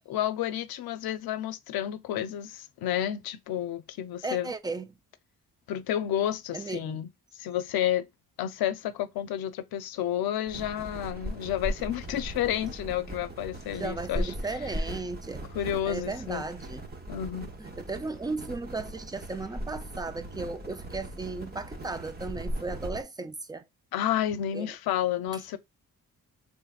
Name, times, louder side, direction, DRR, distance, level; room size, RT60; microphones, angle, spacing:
voice 1, 0.1-4.5 5.7-7.1 7.3-8.1 8.4-14.3 15.5-16.4 17.1-17.5 23.9-25.6, left 11 dB, 85° left, 0.6 m, -30 dB
voice 2, 4.2-4.9 6.5-7.0 13.8-15.5 15.9-16.8 17.6-23.6 24.5-24.7, right 3 dB, 10° right, 0.4 m, -35 dB
sound 1, 10.5-23.0, right 1 dB, 25° right, 0.9 m, -38 dB
3.3 x 3.1 x 2.3 m
cardioid pair, 85°, 35 cm